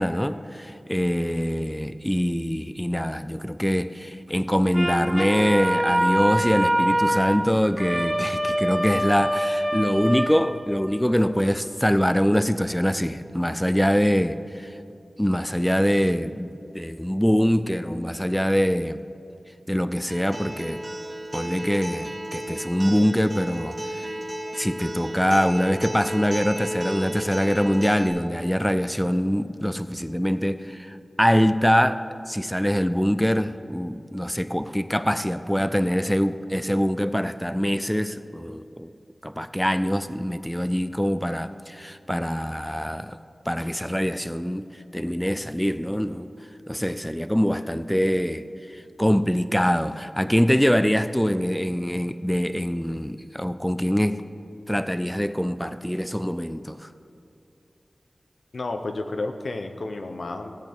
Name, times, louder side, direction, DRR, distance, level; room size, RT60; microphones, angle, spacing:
voice 1, 0.0-14.8 15.2-19.0 19.7-20.8 21.3-24.1 24.5-38.9 39.2-43.2 43.5-46.3 46.7-54.2 54.7-56.9, equal, 5° left, 12 dB, 0.3 m, -24 dB
sound 1, 4.7-11.0, right 1 dB, 10° right, 1.1 m, -25 dB
Acoustic guitar, 20.1-28.1, right 1 dB, 55° right, 1.8 m, -34 dB
voice 2, 58.5-60.6, left 2 dB, 80° left, 6 dB, 0.7 m, -31 dB
18.0 x 7.8 x 3.6 m, 2.7 s
wide cardioid pair, 80°, 0 cm